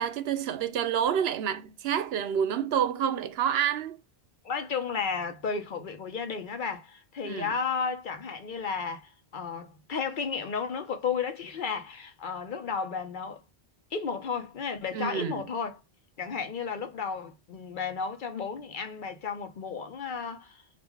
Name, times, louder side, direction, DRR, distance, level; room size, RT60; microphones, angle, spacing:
voice 1, 0.0-4.0 7.2-7.5 14.9-15.4, right 9 dB, 75° right, 0.8 m, -28 dB
voice 2, 4.4-13.4 13.9-15.8 16.2-20.6, left 5 dB, 55° left, 0.8 m, -33 dB
3.6 x 2.5 x 4.6 m
omnidirectional pair, 1.1 m